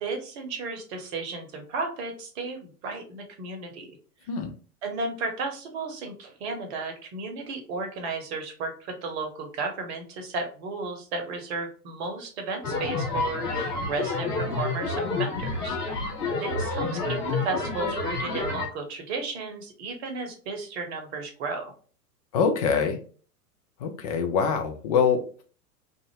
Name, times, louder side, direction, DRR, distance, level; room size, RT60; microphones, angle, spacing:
voice 1, 0.0-4.0 4.8-21.7, right 3 dB, 45° right, 4 dB, 1.0 m, -34 dB
sound 1, 12.6-18.7, left 3 dB, 70° left, 1.1 m, -29 dB
voice 2, 22.3-23.0 23.8-25.4, left 6 dB, 25° left, 4 dB, 0.4 m, -24 dB
2.5 x 2.4 x 2.9 m, 0.41 s
figure-of-eight pair, 100°, 47 cm